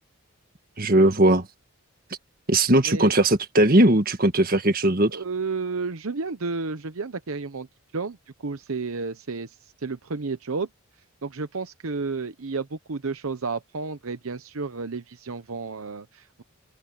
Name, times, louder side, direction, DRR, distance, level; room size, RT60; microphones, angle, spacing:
voice 1, 0.8-1.4 2.5-5.1, right 1 dB, 40° right, 1.7 m, -19 dB
voice 2, 5.1-7.7 7.9-8.2 8.4-10.7 11.2-16.4, right 4 dB, 70° right, 0.8 m, -31 dB
open air
head